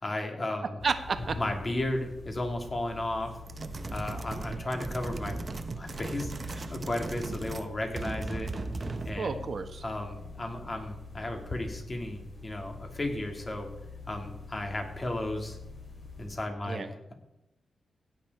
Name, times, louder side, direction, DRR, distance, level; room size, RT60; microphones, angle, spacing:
voice 1, 0.0-0.8 1.4-3.4 3.9-5.4 5.7-8.5 9.0-9.4 9.8-13.7 14.1-15.6 16.2-17.1, left 1 dB, 30° left, 3 dB, 2.5 m, -34 dB
sound 1, 0.8-16.3, left 3 dB, 50° left, 4.0 m, -45 dB
voice 2, 0.8-1.3 9.2-9.8 16.7-16.9, right 5 dB, 55° right, 8 dB, 1.3 m, -31 dB
sound 2, 3.5-7.7 7.9-9.3, right 3 dB, 40° right, 1.0 m, -37 dB
16.5 x 9.5 x 4.8 m, 0.90 s
wide cardioid pair, 100°, 0 cm